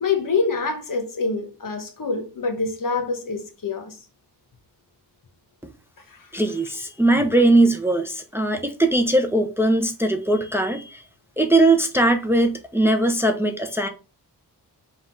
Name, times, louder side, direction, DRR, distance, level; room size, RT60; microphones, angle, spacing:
voice 1, 0.0-4.0 6.1-6.3, left 4 dB, 50° left, 1.1 m, -26 dB
voice 2, 6.3-11.0 11.4-13.9, right 2 dB, 5° right, 0.7 m, -20 dB
4.2 x 2.5 x 3.7 m
cardioid pair, 55°, 40 cm